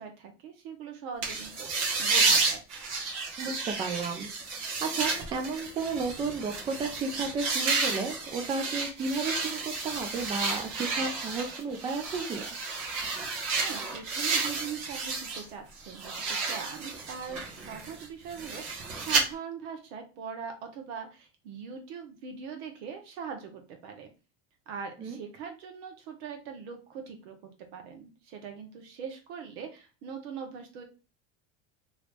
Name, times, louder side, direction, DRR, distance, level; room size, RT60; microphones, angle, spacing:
voice 1, 0.0-2.6 13.5-24.1 24.7-30.8, right 6 dB, 75° right, 4 dB, 1.0 m, -41 dB
sound 1, 1.2-15.4 15.8-19.2, right 4 dB, 55° right, 1.1 m, -31 dB
voice 2, 3.4-12.5 25.0-25.2, right 4 dB, 20° right, 4 dB, 0.3 m, -33 dB
3.0 x 2.5 x 3.2 m, 0.32 s
cardioid pair, 150°, 30 cm